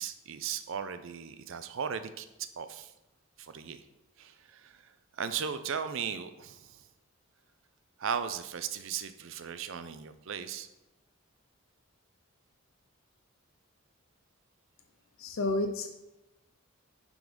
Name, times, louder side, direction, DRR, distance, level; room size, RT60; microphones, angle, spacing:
voice 1, 0.0-2.9 3.4-3.8 4.2-6.9 8.0-10.7, right 7 dB, 65° right, 11 dB, 0.5 m, -37 dB
voice 2, 15.2-15.9, left 2 dB, 65° left, 5 dB, 0.5 m, -30 dB
5.9 x 3.9 x 5.2 m, 0.96 s
head